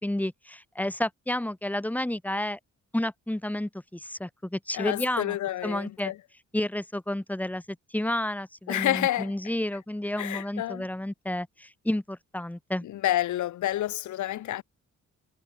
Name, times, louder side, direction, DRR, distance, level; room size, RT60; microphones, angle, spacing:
voice 1, 0.0-2.6 2.9-5.4 5.6-6.1 6.5-7.6 7.9-12.9, left 1 dB, 5° left, 1.1 m, -31 dB
voice 2, 4.7-6.2 8.7-9.3 10.2-10.8 12.8-14.6, left 13 dB, 75° left, 1.1 m, -29 dB
cardioid pair, 120°, 30 cm